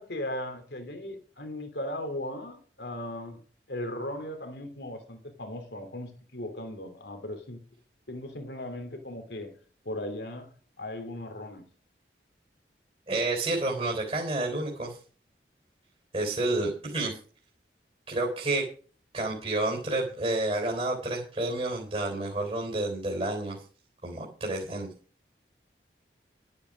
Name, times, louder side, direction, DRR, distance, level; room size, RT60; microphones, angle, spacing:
voice 1, 0.0-3.4 3.7-7.6 8.1-9.5 9.8-11.7 16.2-16.5, left 1 dB, 75° left, 2.9 m, -37 dB
voice 2, 13.1-15.0 16.1-17.2 18.1-18.6 19.1-23.6 24.0-24.9, right 2 dB, 35° right, 3.5 m, -30 dB
12.0 x 9.7 x 5.1 m
head